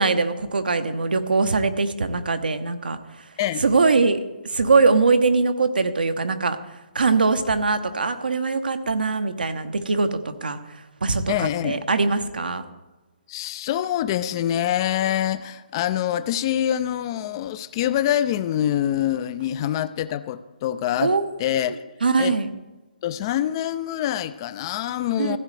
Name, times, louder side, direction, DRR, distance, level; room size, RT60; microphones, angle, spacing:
voice 1, 0.0-3.0 3.6-4.2 4.4-6.6 6.9-10.6 11.0-12.6 21.0-21.2 21.7-21.8 22.0-22.5 25.2-25.4, right 4 dB, 85° right, 0.9 m, -21 dB
voice 2, 11.3-11.9 13.3-21.1 21.4-21.8 22.2-22.4 23.0-25.4, left 11 dB, 30° left, 0.4 m, -25 dB
15.0 x 8.9 x 3.3 m
hypercardioid pair, 150°, 5 cm